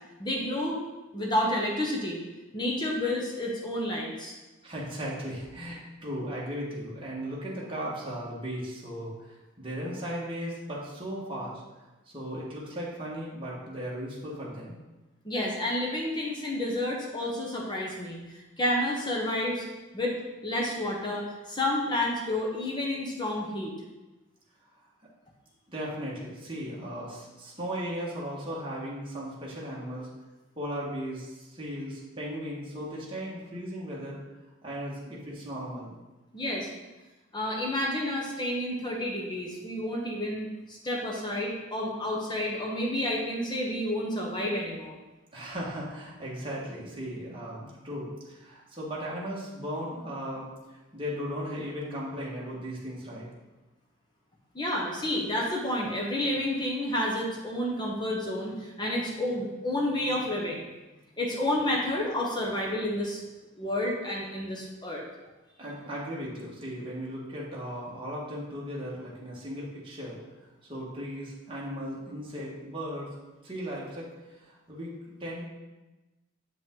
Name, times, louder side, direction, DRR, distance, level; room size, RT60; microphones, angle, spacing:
voice 1, 0.2-0.8 1.1-2.2 2.5-4.4 15.2-18.2 18.6-19.6 19.9-20.2 20.4-23.7 36.3-36.7 37.3-45.0 54.5-60.6 61.2-63.2 63.6-65.0, left 1 dB, 20° left, -2 dB, 0.9 m, -30 dB
voice 2, 4.6-11.6 12.1-14.8 25.7-30.1 30.5-34.2 34.6-35.9 45.3-50.5 50.9-53.3 65.6-70.2 70.7-73.1 73.4-74.1 74.4-75.4, equal, 25° right, -5 dB, 1.6 m, -36 dB
7.3 x 5.3 x 3.8 m, 1.1 s
head